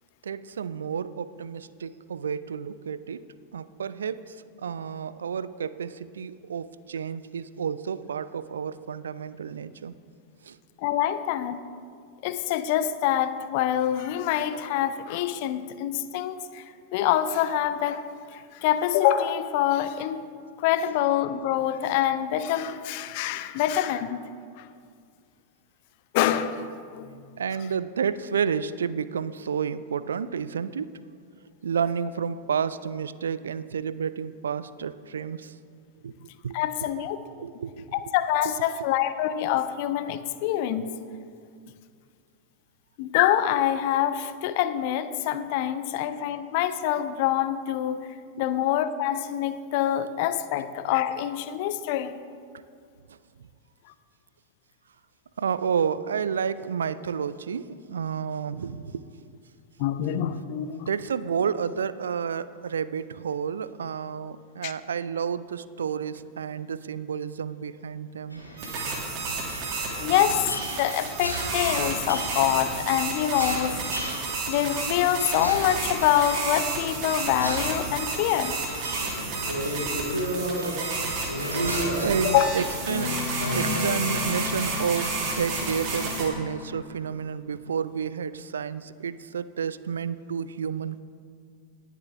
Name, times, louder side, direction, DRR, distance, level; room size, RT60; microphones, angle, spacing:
voice 1, 0.2-3.2 3.5-10.0 10.4-10.6 27.4-30.9 31.6-35.5 36.0-36.6 37.3-37.9 48.4-48.5 53.1-53.2 55.4-59.0 60.8-68.4 82.0-91.0, right 7 dB, 70° right, 16 dB, 0.3 m, -30 dB
voice 2, 10.8-11.6 12.2-16.6 16.9-18.0 18.3-20.3 20.6-24.3 24.6-24.7 26.1-27.1 36.5-37.2 37.9-40.9 43.0-52.2 59.8-60.9 64.6-64.7 70.0-73.8 74.5-78.8 79.4-79.5 82.2-82.5, left 11 dB, 50° left, 12 dB, 0.6 m, -25 dB
sound 1, 68.3-82.1, equal, 90° right, 2.0 m, -34 dB
sound 2, 68.6-86.2, right 3 dB, 40° right, 2.3 m, -31 dB
sound 3, 82.9-87.1, left 4 dB, 70° left, 1.7 m, -33 dB
18.5 x 7.3 x 3.5 m, 2.1 s
figure-of-eight pair, 90°, 0 cm